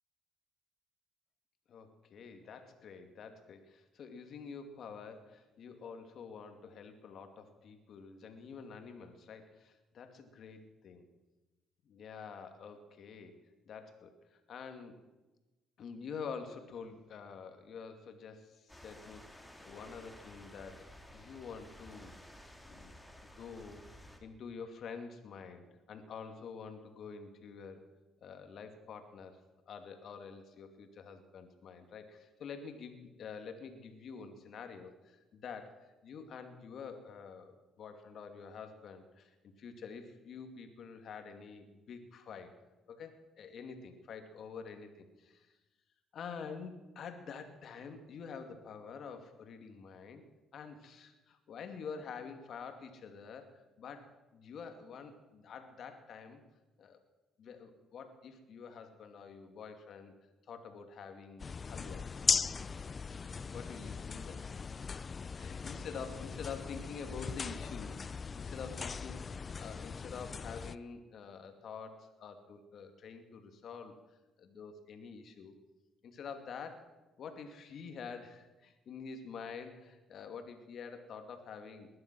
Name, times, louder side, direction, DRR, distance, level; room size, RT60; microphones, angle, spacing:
voice 1, 1.7-11.1 11.8-13.4 13.7-15.0 15.8-20.9 21.1-22.1 22.6-23.0 23.3-23.8 24.2-27.8 28.2-29.4 29.7-42.6 42.9-45.5 46.1-50.2 50.5-56.4 56.8-57.0 57.4-60.1 60.5-62.1 63.3-64.4 65.4-74.0 74.4-75.6 76.0-76.9 77.2-81.9, left 5 dB, 60° left, 7 dB, 2.4 m, -47 dB
sound 1, 18.7-24.2, left 1 dB, 10° left, 3.0 m, -54 dB
sound 2, 61.4-70.8, left 5 dB, 35° left, 0.5 m, -38 dB
20.5 x 11.5 x 6.2 m, 1.1 s
supercardioid pair, 75°, 0 cm